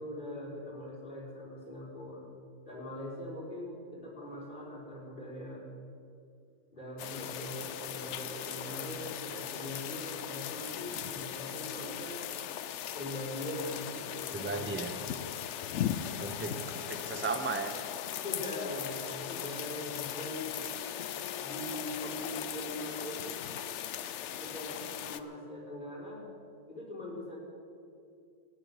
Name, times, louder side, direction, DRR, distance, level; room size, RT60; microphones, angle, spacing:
voice 1, 0.0-2.2 2.6-5.6 6.7-12.2 12.9-14.8 15.6-16.0 18.2-20.5 21.4-23.3 24.4-26.2 26.7-27.4, left 1 dB, 25° left, -7 dB, 5.1 m, -41 dB
sound 1, 7.0-25.2, left 10 dB, 85° left, 0.6 m, -38 dB
voice 2, 14.3-14.9 16.2-17.8, right 4 dB, 10° right, 7 dB, 0.5 m, -36 dB
14.5 x 9.8 x 9.6 m, 2.5 s
omnidirectional pair, 1.9 m